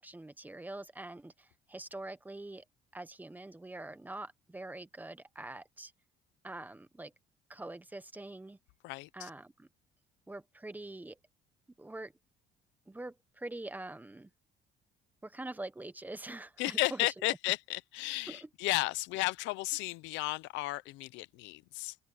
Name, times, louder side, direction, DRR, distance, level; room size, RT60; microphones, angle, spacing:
voice 1, 0.0-2.6 2.9-5.9 6.4-7.1 7.5-8.6 9.1-9.7 10.3-11.2 11.8-12.1 12.9-14.3 15.2-17.1 18.3-18.5, right 2 dB, 10° right, 1.1 m, -44 dB
voice 2, 8.8-9.3 16.6-22.0, left 20 dB, 90° left, 0.7 m, -34 dB
open air
cardioid pair, 125°, 19 cm